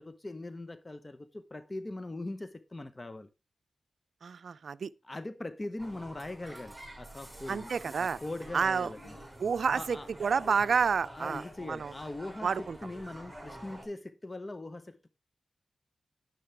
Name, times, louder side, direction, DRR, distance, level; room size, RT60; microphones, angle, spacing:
voice 1, 0.0-3.3 5.0-7.7 8.0-9.2 9.7-10.1 11.1-15.1, left 2 dB, 30° left, 0.9 m, -41 dB
voice 2, 4.2-4.9 7.5-8.2 8.5-8.9 9.4-11.4 11.7-11.9 12.4-12.8, right 6 dB, 75° right, 0.4 m, -29 dB
sound 1, 5.8-13.8, right 1 dB, 15° right, 6.0 m, -48 dB
10.0 x 10.0 x 3.3 m
cardioid pair, 55°, 0 cm